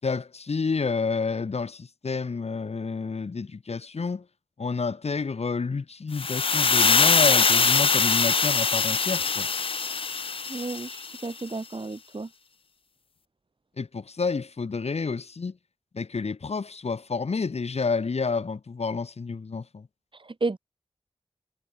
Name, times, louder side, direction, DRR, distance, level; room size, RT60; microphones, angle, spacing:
voice 1, 0.0-4.2 4.6-9.5 13.8-15.6 15.9-19.9, left 4 dB, 80° left, 4.7 m, -29 dB
sound 1, 6.2-11.2, left 5 dB, 60° left, 0.6 m, -22 dB
voice 2, 10.5-12.3 20.1-20.6, right 3 dB, 50° right, 3.7 m, -32 dB
cardioid pair, 45°, 11 cm